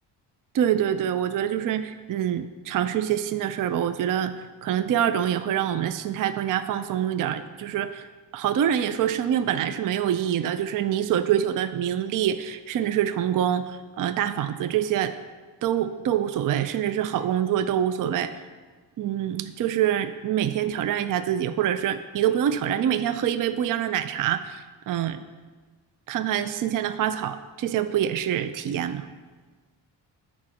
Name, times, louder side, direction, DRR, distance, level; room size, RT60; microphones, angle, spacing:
voice 1, 0.5-8.1 8.3-15.1 15.6-18.4 19.0-25.2 26.1-29.1, right 10 dB, 50° right, 11 dB, 0.4 m, -25 dB
7.3 x 4.3 x 5.9 m, 1.4 s
cardioid pair, 70°, 44 cm